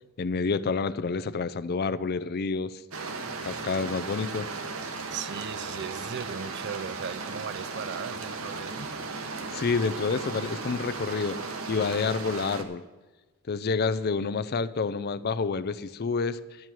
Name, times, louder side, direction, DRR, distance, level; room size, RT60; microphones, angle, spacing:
voice 1, 0.2-2.8 3.4-4.5 9.5-11.4 11.7-12.8 13.5-16.4, left 4 dB, 50° left, 0.5 m, -28 dB
sound 1, 2.9-12.6, right 4 dB, 75° right, 1.2 m, -36 dB
voice 2, 5.1-8.9, right 6 dB, 55° right, 0.5 m, -37 dB
12.5 x 11.0 x 4.5 m
head